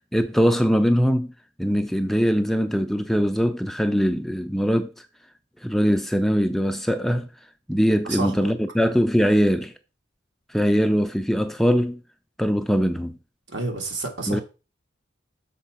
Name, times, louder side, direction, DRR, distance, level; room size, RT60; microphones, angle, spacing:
voice 1, 0.1-1.3 1.6-4.9 5.6-7.3 7.7-9.7 10.5-12.0 12.4-13.2 14.3-14.4, equal, ahead, 0.4 m, -21 dB
voice 2, 8.0-8.5 13.5-14.4, right 3 dB, 75° right, 1.9 m, -29 dB
6.7 x 4.5 x 5.7 m
head